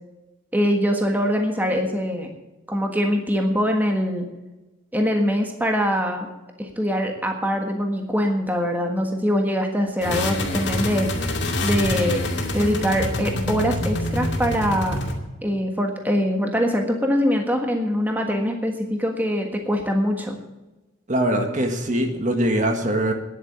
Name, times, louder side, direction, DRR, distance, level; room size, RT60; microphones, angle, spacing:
voice 1, 0.5-2.3 2.7-4.3 4.9-6.3 6.6-11.1 11.6-12.2 12.5-15.0 15.4-20.4, equal, 10° right, 3 dB, 1.5 m, -23 dB
sound 1, 10.0-15.1, left 1 dB, 55° left, 2.4 m, -26 dB
voice 2, 21.1-23.1, right 1 dB, 40° right, 4 dB, 1.6 m, -22 dB
10.5 x 8.8 x 8.8 m, 1.1 s
head